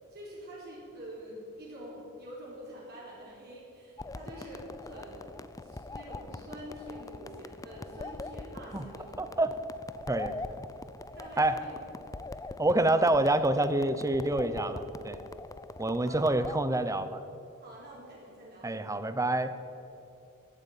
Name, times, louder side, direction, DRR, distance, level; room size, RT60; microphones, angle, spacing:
voice 1, 0.1-9.4 11.1-11.8 16.0-16.5 17.6-18.7, equal, 50° right, -6 dB, 4.7 m, -46 dB
sound 1, 4.0-16.6, left 2 dB, 15° left, 0.4 m, -43 dB
voice 2, 9.2-9.5 10.1-10.6 11.4-11.6 12.6-15.2 15.8-17.2 18.6-19.5, right 2 dB, 15° right, 11 dB, 0.8 m, -27 dB
15.0 x 9.3 x 9.3 m, 2.8 s
head